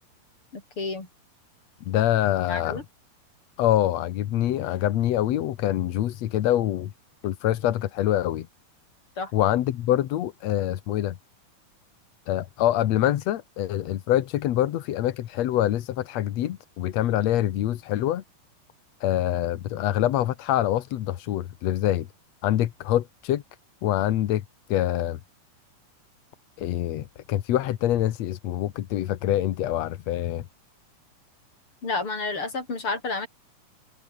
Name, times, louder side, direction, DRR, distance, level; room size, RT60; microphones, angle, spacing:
voice 1, 0.5-1.1 2.5-2.8 9.2-9.3 31.8-33.3, left 3 dB, 35° left, 6.4 m, -30 dB
voice 2, 1.9-2.8 3.6-6.9 7.2-8.5 9.3-11.2 12.3-18.2 19.0-22.1 22.4-23.4 23.8-24.4 24.7-25.2 26.6-30.5, left 12 dB, 65° left, 1.7 m, -25 dB
omnidirectional pair, 4.4 m